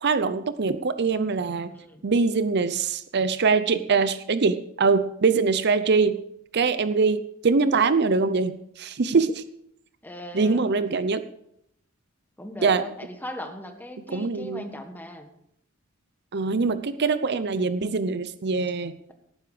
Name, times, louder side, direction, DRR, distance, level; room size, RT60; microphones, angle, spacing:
voice 1, 0.0-1.7 2.0-6.2 6.5-9.4 10.3-11.2 12.6-12.8 14.1-14.7 16.3-19.1, right 4 dB, 55° right, 12 dB, 0.6 m, -23 dB
voice 2, 1.7-2.0 10.0-10.6 12.4-15.3, left 1 dB, 10° left, 5 dB, 1.6 m, -38 dB
17.5 x 9.6 x 5.0 m, 0.74 s
head